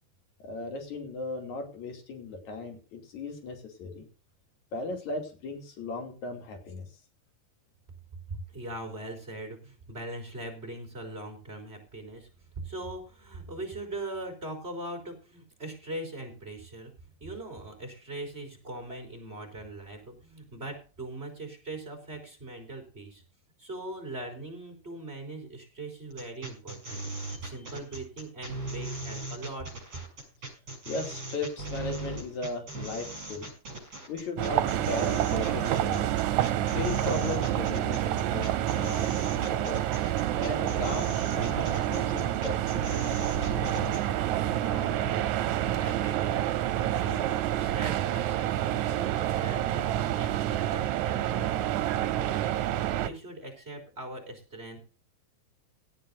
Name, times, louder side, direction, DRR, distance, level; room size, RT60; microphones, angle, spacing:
voice 1, 0.4-4.1 4.7-6.9 27.3-27.4 30.9-33.5 34.1-36.1 36.6-39.0 39.4-39.8 40.4-43.3, left 3 dB, 75° left, 4 dB, 4.0 m, -37 dB
voice 2, 8.3-12.3 12.6-16.9 17.2-23.2 23.6-29.7 44.4-46.5 46.9-51.5 52.0-52.7 53.0-54.8, right 2 dB, 20° right, 4 dB, 3.9 m, -41 dB
sound 1, 26.1-44.1, right 2 dB, 35° right, 6.7 m, -38 dB
sound 2, 34.4-53.1, right 12 dB, 80° right, 2.2 m, -28 dB
17.5 x 11.5 x 2.6 m, 0.36 s
omnidirectional pair, 3.3 m